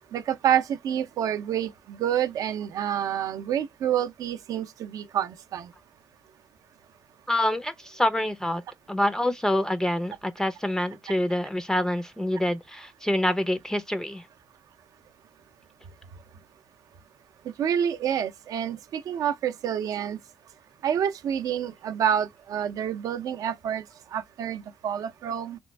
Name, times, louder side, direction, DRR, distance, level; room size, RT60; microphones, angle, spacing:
voice 1, 0.1-5.7 17.6-20.2 20.8-23.8 24.1-25.6, right 9 dB, 65° right, 0.5 m, -28 dB
voice 2, 7.3-8.6 8.9-14.2, left 1 dB, 10° left, 0.4 m, -26 dB
3.0 x 2.5 x 3.2 m
cardioid pair, 80°, 6 cm